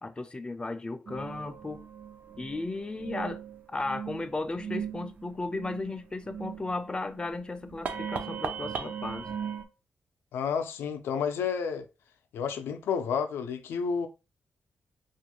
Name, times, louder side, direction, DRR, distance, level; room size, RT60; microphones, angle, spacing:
voice 1, 0.0-1.8 2.4-3.4 3.7-9.3, left 2 dB, 25° left, 0.4 m, -35 dB
sound 1, 1.1-9.6, right 7 dB, 50° right, 0.4 m, -38 dB
voice 2, 10.3-11.9 12.3-14.1, left 6 dB, 90° left, 0.4 m, -30 dB
2.4 x 2.2 x 2.9 m
cardioid pair, 80°, 4 cm